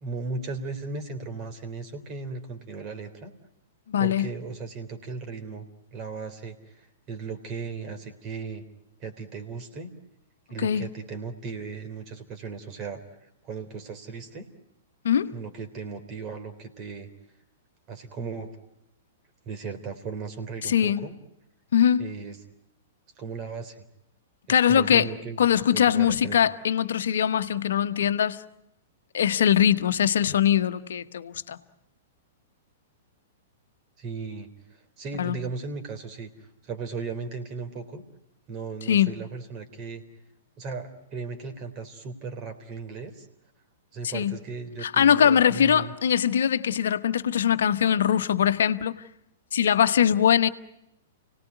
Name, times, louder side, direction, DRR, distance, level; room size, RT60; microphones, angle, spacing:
voice 1, 0.0-3.3 4.0-8.6 9.0-9.9 10.5-14.5 15.3-17.1 17.9-18.5 19.5-21.1 22.0-22.4 23.2-23.8 24.5-25.4 25.7-26.4 34.0-36.3 36.6-38.0 38.5-40.0 40.6-43.3 43.9-45.9, right 4 dB, 35° right, 3.5 m, -36 dB
voice 2, 3.9-4.3 10.6-10.9 15.0-15.3 20.6-21.1 21.7-22.1 24.5-25.1 25.4-28.4 29.1-31.6 35.2-35.4 38.9-39.1 44.1-44.4 44.8-49.0 49.5-50.5, left 9 dB, 65° left, 1.2 m, -22 dB
29.5 x 18.5 x 9.3 m
figure-of-eight pair, 105°, 0 cm